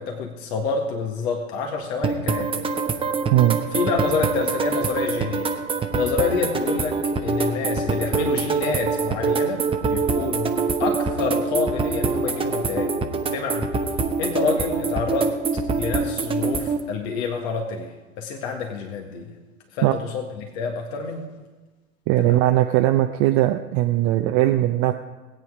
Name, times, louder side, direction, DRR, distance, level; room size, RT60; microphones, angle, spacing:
voice 1, 0.0-2.7 3.7-5.5 5.9-10.5 10.8-12.9 13.3-13.7 14.2-15.3 15.7-19.3 19.7-21.2 22.2-22.4, left 4 dB, 50° left, 2 dB, 1.9 m, -27 dB
sound 1, 2.0-16.8, right 4 dB, 15° right, 0.9 m, -25 dB
voice 2, 3.3-3.6 19.8-20.0 22.1-24.9, right 14 dB, 35° right, 5 dB, 0.7 m, -19 dB
18.0 x 9.1 x 4.9 m, 1.2 s
hypercardioid pair, 100°, 41 cm